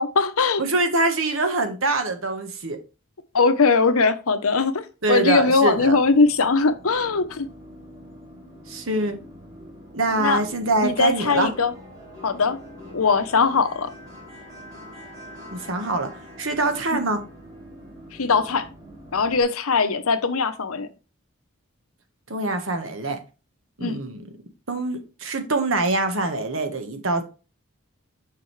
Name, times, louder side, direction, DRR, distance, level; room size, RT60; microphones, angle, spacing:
voice 1, 0.0-0.6 3.3-7.5 10.2-10.4 10.8-11.7 12.2-12.6 12.9-13.9 16.9-17.0 18.2-18.7 19.1-20.9 23.8-24.0, left 4 dB, 85° left, 0.8 m, -20 dB
voice 2, 0.6-2.8 5.0-6.0 8.7-9.2 9.9-11.5 15.5-16.1 16.4-17.2 22.3-23.2 23.8-24.2 24.7-27.2, right 2 dB, 70° right, 1.3 m, -24 dB
sound 1, 5.7-19.4, equal, 15° right, 2.8 m, -44 dB
6.8 x 5.3 x 3.2 m
head